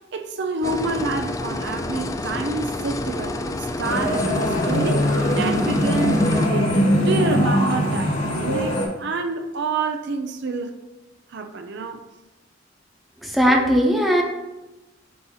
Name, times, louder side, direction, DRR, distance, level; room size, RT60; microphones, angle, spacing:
voice 1, 0.1-10.7 11.3-12.0, right 3 dB, 60° right, 6 dB, 0.6 m, -28 dB
sound 1, 0.6-6.5, left 2 dB, 15° left, 0.3 m, -29 dB
sound 2, 3.8-8.8, equal, 90° left, 2.4 m, -21 dB
voice 2, 13.2-14.2, equal, ahead, 0 dB, 0.9 m, -18 dB
8.3 x 2.9 x 5.6 m, 1.0 s
head